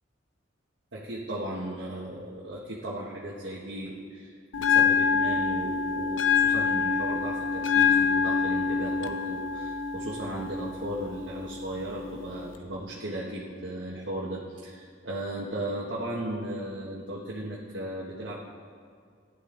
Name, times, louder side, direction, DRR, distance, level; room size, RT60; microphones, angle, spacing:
voice 1, 0.9-18.3, right 1 dB, 75° right, -5 dB, 1.6 m, -36 dB
Bell, 4.5-12.5, left 6 dB, 80° left, 0.9 m, -26 dB
18.5 x 11.5 x 4.0 m, 2.1 s
head